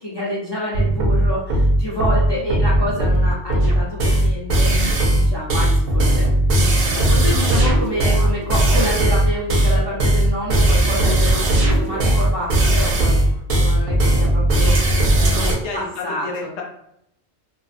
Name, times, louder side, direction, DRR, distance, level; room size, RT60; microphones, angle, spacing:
voice 1, 0.0-4.8 5.1-6.3 6.8-13.2 13.6-15.4 15.7-16.6, left 1 dB, 40° left, -6 dB, 0.3 m, -28 dB
sound 1, 0.7-15.5, right 1 dB, 65° right, 0.7 m, -17 dB
voice 2, 15.2-16.6, left 3 dB, 75° left, 1 dB, 0.9 m, -31 dB
2.5 x 2.1 x 2.4 m, 0.76 s
omnidirectional pair, 1.2 m